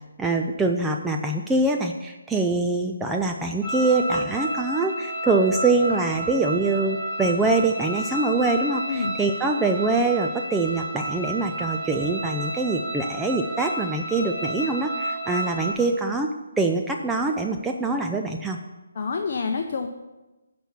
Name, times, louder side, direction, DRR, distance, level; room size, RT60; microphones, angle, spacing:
voice 1, 0.2-16.3 16.6-18.6, right 3 dB, 5° right, 2 dB, 0.4 m, -24 dB
sound 1, 3.6-15.7, right 1 dB, 30° right, 2.6 m, -31 dB
voice 2, 18.9-19.9, left 4 dB, 50° left, 4 dB, 0.7 m, -27 dB
10.0 x 4.4 x 7.1 m, 1.1 s
figure-of-eight pair, 150°, 0 cm